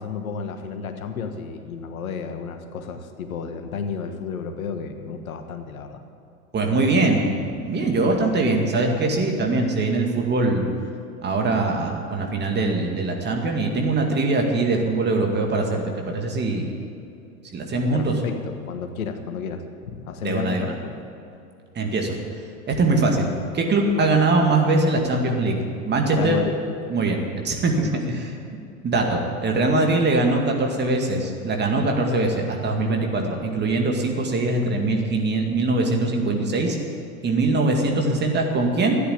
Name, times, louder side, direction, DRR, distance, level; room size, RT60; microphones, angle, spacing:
voice 1, 0.0-6.0 6.7-6.9 17.9-21.0 24.0-24.2 26.1-26.5 27.8-28.1, left 6 dB, 70° left, 7 dB, 1.5 m, -32 dB
voice 2, 6.5-7.2 7.5-10.6 11.2-16.7 17.5-18.2 20.2-20.7 21.7-23.3 23.5-25.5 25.9-26.4 26.9-27.2 27.4-27.7 28.1-28.3 28.8-36.8 37.2-39.0, right 2 dB, 25° right, 2 dB, 2.2 m, -22 dB
13.0 x 10.0 x 8.6 m, 2.6 s
figure-of-eight pair, 90°, 44 cm